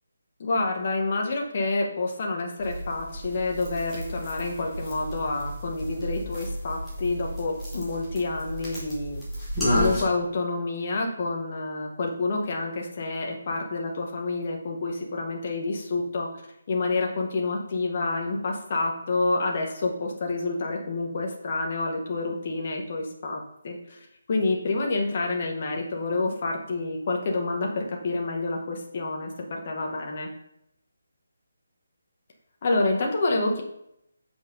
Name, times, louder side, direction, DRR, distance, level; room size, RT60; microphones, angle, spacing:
voice 1, 0.4-9.2 9.7-16.3 16.7-24.0 24.3-30.3 32.6-33.6, left 3 dB, 30° left, 1 dB, 1.2 m, -28 dB
sound 1, 2.6-10.0, equal, 5° left, 1.7 m, -32 dB
6.4 x 5.0 x 5.4 m, 0.78 s
hypercardioid pair, 175°, 0 cm